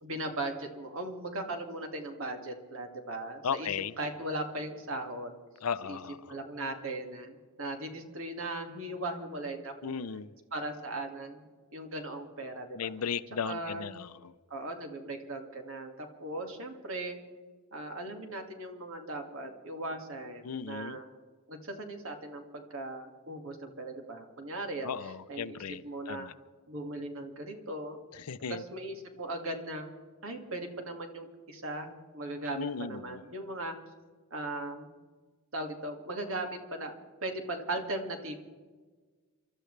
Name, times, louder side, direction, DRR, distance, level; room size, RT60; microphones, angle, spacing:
voice 1, 0.0-3.7 4.0-5.3 5.8-6.0 6.3-10.0 10.5-11.5 11.7-12.9 13.4-13.9 14.5-17.2 17.7-21.1 21.5-24.9 25.3-25.6 25.8-26.3 26.7-28.0 28.5-29.9 30.2-33.7 34.3-34.9 35.5-36.9 37.2-38.3, right 2 dB, 60° right, 4 dB, 2.2 m, -38 dB
voice 2, 3.4-3.9 5.6-6.3 9.8-10.3 12.7-14.3 20.4-21.0 24.8-26.3 28.1-28.6 32.5-33.2, left 6 dB, 85° left, 14 dB, 0.6 m, -36 dB
28.0 x 13.0 x 3.3 m, 1.4 s
head